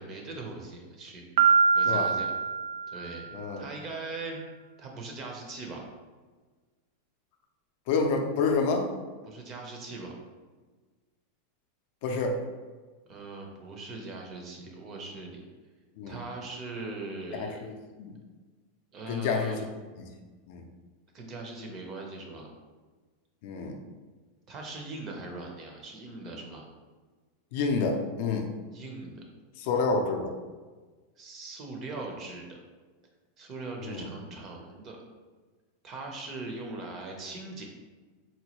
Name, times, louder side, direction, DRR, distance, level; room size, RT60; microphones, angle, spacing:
voice 1, 0.0-2.3 2.9-3.3 3.6-4.4 4.8-5.8 9.3-10.1 13.1-15.4 16.1-17.6 18.9-19.6 21.1-22.5 24.5-26.6 28.7-29.2 31.2-32.6 33.4-35.0 35.8-37.6, right 3 dB, 30° right, 1 dB, 0.6 m, -40 dB
Piano, 1.4-3.3, right 5 dB, 75° right, 0.3 m, -24 dB
voice 2, 3.3-3.6 7.9-8.9 12.0-12.4 16.0-16.2 17.3-18.2 19.1-19.6 20.5-20.6 23.4-23.8 27.5-28.5 29.6-30.3 33.8-34.1, left 4 dB, 55° left, 3 dB, 0.4 m, -28 dB
4.0 x 2.2 x 2.9 m, 1.3 s
supercardioid pair, 155°, 0 cm